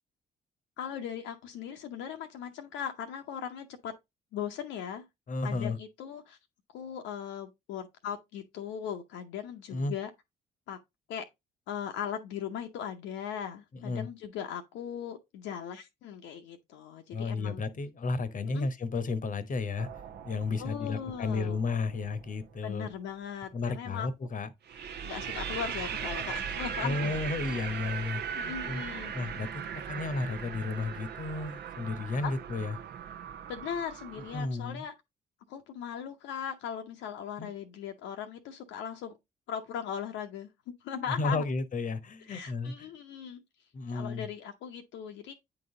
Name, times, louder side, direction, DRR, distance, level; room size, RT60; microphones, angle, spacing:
voice 1, 0.8-3.9 4.3-5.0 5.4-6.4 6.7-10.1 10.7-10.8 11.1-11.3 11.7-17.6 18.5-18.7 20.6-21.6 22.6-24.1 25.0-27.1 28.3-29.1 32.2-32.3 33.5-34.9 35.5-39.2 39.5-40.5 40.8-41.4 42.3-43.4 43.9-45.3, left 8 dB, 65° left, 0.8 m, -38 dB
voice 2, 5.3-5.8 9.7-9.9 13.7-14.1 17.1-19.9 20.2-22.9 23.5-24.5 26.8-28.8 29.1-32.8 34.3-34.9 37.4-37.5 41.1-42.9 43.7-44.3, left 3 dB, 40° left, 1.0 m, -33 dB
sound 1, 19.8-22.6 24.7-34.4, right 7 dB, 55° right, 0.9 m, -39 dB
9.1 x 4.0 x 3.7 m
figure-of-eight pair, 40°, 21 cm